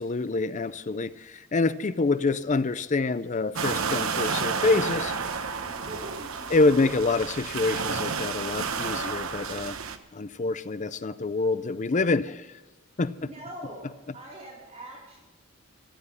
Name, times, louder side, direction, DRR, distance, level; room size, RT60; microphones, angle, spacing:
voice 1, 0.0-5.1 6.5-9.8 10.1-12.6 13.0-13.1, left 3 dB, 35° left, 15 dB, 0.5 m, -26 dB
sound 1, 3.6-10.0, right 5 dB, 85° right, 1.1 m, -31 dB
voice 2, 5.6-6.6 13.2-15.2, right 1 dB, 30° right, -3 dB, 4.6 m, -43 dB
15.0 x 12.0 x 5.7 m, 1.1 s
head